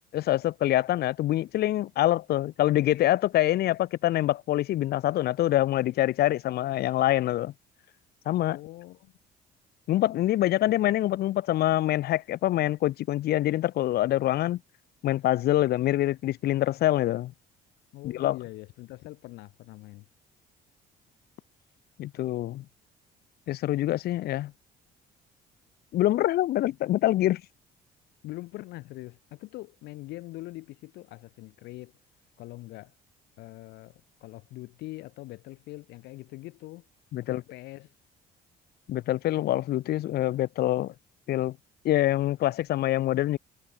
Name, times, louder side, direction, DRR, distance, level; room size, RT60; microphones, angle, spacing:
voice 1, 0.1-7.5 8.2-8.6 9.9-14.6 15.0-17.3 18.0-18.4 22.0-22.6 23.5-24.5 25.9-27.4 37.1-37.4 38.9-40.9 41.3-41.6 41.8-43.4, left 14 dB, 70° left, 1.7 m, -25 dB
voice 2, 8.5-9.1 10.7-10.8 17.9-20.0 28.2-31.9 32.4-32.9 33.4-36.9 37.2-37.9, left 19 dB, 85° left, 2.4 m, -43 dB
cardioid pair, 110°, 17 cm